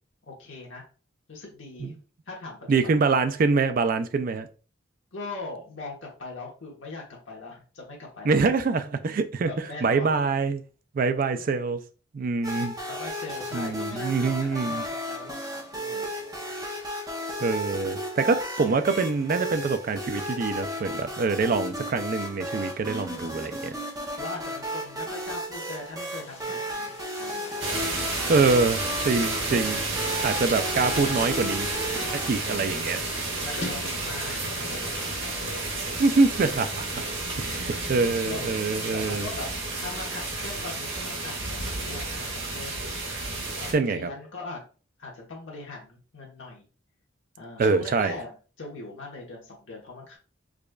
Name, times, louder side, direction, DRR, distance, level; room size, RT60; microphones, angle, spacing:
voice 1, 0.3-0.8 1.3-2.0 2.3-3.1 5.1-8.5 9.4-10.3 12.8-16.2 23.2-23.6 24.2-28.0 28.5-28.6 33.4-35.9 37.7-38.5 38.9-42.9 43.6-44.6 45.0-46.7 47.4-50.2, left 3 dB, 70° left, 1.1 m, -41 dB
voice 2, 2.7-4.5 8.2-9.5 9.8-10.6 10.9-11.8 12.1-12.7 13.5-14.8 17.4-23.7 28.3-28.8 29.1-29.8 30.2-31.7 32.1-33.0 36.0-37.0 37.4-39.3 43.7-44.1 47.6-48.2, right 4 dB, 45° right, 0.3 m, -25 dB
sound 1, 12.4-32.3, equal, 20° right, 0.7 m, -34 dB
Chatter / Gurgling / Tap, 25.2-25.3 26.0-35.1, left 2 dB, 30° left, 0.6 m, -44 dB
sound 2, 27.6-43.7, right 2 dB, 60° right, 1.2 m, -31 dB
4.8 x 2.4 x 2.2 m
head